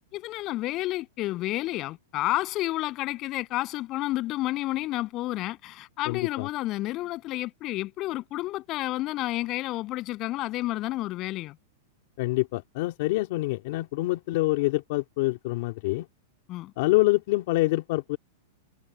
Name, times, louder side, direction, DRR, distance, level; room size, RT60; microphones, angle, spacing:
voice 1, 0.1-11.6 16.5-16.7, left 17 dB, 30° left, 7.5 m, -30 dB
voice 2, 6.1-6.5 12.2-16.1 16.8-18.2, left 20 dB, 50° left, 2.8 m, -26 dB
supercardioid pair, 155°, 0 cm